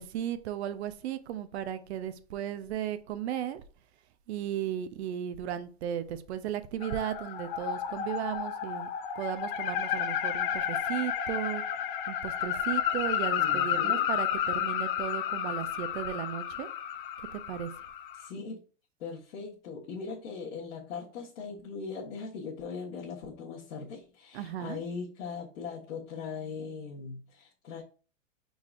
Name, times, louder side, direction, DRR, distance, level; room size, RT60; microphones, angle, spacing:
voice 1, 0.0-3.6 4.3-8.9 9.2-11.6 12.1-16.7 17.3-17.7 24.3-24.8, right 10 dB, 55° right, 0.6 m, -35 dB
sound 1, 6.8-18.3, left 9 dB, 40° left, 0.5 m, -32 dB
voice 2, 13.4-14.1 18.1-18.6 19.0-27.8, left 5 dB, 65° left, 1.4 m, -40 dB
4.8 x 3.9 x 2.4 m
hypercardioid pair, 145°, 40 cm